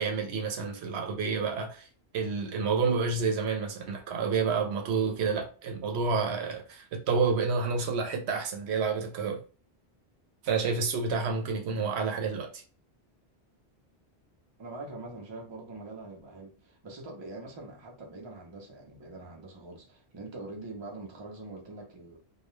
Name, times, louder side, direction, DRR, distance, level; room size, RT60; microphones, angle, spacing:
voice 1, 0.0-1.9 2.1-9.4 10.4-12.6, right 5 dB, 80° right, 0.9 m, -29 dB
voice 2, 14.6-22.2, right 2 dB, 30° right, 0.6 m, -44 dB
2.3 x 2.1 x 3.0 m
omnidirectional pair, 1.1 m